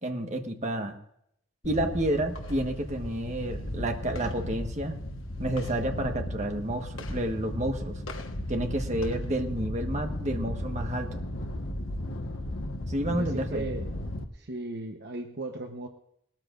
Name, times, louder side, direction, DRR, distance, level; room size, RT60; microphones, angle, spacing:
voice 1, 0.0-0.9 1.6-5.0 5.4-8.0 8.5-11.1 12.9-13.7, right 1 dB, 35° right, 4 dB, 1.3 m, -30 dB
sound 1, 1.6-14.2, left 1 dB, 75° left, 1.3 m, -35 dB
voice 2, 13.1-13.9 14.3-15.9, right 2 dB, 55° right, 5 dB, 0.9 m, -36 dB
20.0 x 13.5 x 2.5 m, 0.73 s
head